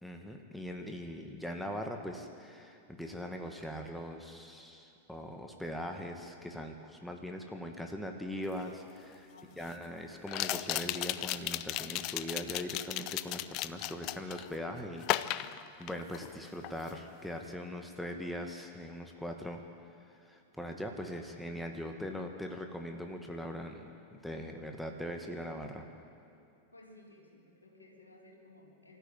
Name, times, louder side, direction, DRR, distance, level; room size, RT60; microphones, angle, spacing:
voice 1, 0.0-9.3 9.6-19.6 20.2-23.9 24.2-25.9, equal, ahead, 3 dB, 1.9 m, -41 dB
sound 1, 8.6-8.7 10.3-14.5 15.0-16.3 16.6-17.0, left 15 dB, 40° left, 0.6 m, -35 dB
voice 2, 9.3-9.9 26.7-29.0, left 2 dB, 80° left, -1 dB, 3.7 m, -57 dB
25.0 x 14.0 x 8.9 m, 2.6 s
figure-of-eight pair, 90°, 0 cm